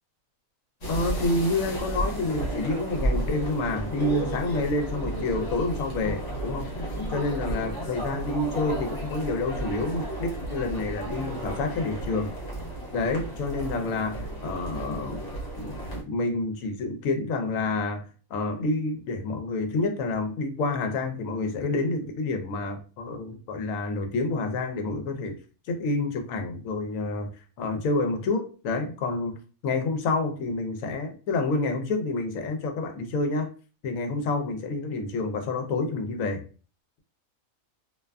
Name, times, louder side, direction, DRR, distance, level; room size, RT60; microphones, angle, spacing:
sound 1, 0.8-16.0, right 1 dB, 50° left, 1.0 m, -33 dB
voice 1, 0.9-12.3 12.9-15.2 15.6-25.4 25.7-27.3 27.6-33.5 33.8-36.4, left 3 dB, 75° left, 5 dB, 1.0 m, -28 dB
2.6 x 2.3 x 2.2 m, 0.37 s
omnidirectional pair, 1.5 m